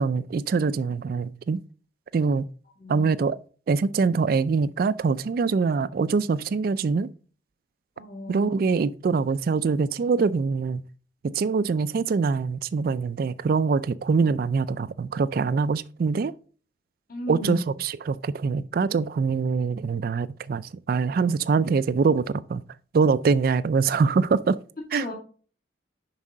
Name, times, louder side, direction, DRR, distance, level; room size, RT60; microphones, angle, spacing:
voice 1, 0.0-1.6 2.1-2.4 2.9-3.4 3.7-7.1 8.3-10.8 11.2-16.3 17.3-22.6 22.9-24.6 24.9-25.1, right 5 dB, 50° right, 0.3 m, -24 dB
voice 2, 8.0-8.6 17.1-17.7 24.9-25.1, left 2 dB, 50° left, 2.1 m, -34 dB
7.2 x 5.4 x 3.7 m
head